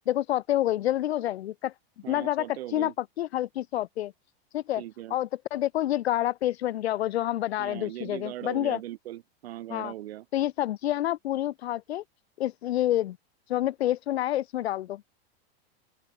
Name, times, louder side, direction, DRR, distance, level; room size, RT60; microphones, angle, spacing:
voice 1, 0.1-1.7 2.1-2.5 2.7-2.9 3.2-4.1 4.5-4.8 5.1-8.8 9.7-9.9 10.3-12.0 12.4-13.2 13.5-15.0, left 13 dB, 85° left, 0.9 m, -28 dB
voice 2, 2.0-2.9 4.8-5.2 7.6-10.3, right 14 dB, 75° right, 4.5 m, -39 dB
open air
hypercardioid pair, 115°, 31 cm